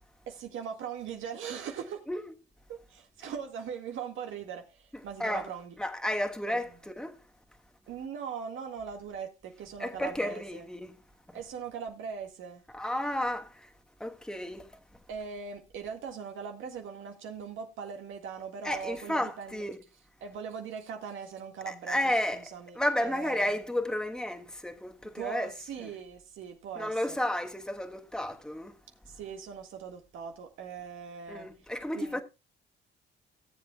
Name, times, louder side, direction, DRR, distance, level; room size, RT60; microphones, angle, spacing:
voice 1, 0.3-2.1 2.7-5.8 6.5-6.6 7.9-10.7 11.3-12.6 15.1-19.6 20.2-23.6 25.2-27.2 29.1-31.5 32.0-32.2, right 7 dB, 85° right, 1.8 m, -40 dB
voice 2, 5.2-5.5 5.8-7.2 9.8-10.9 11.3-11.4 12.7-13.7 14.0-14.8 18.6-19.7 21.7-25.5 25.8-25.9 26.8-28.8 31.3-32.2, left 1 dB, 5° left, 1.3 m, -32 dB
17.5 x 7.6 x 2.3 m
cardioid pair, 90°, 20 cm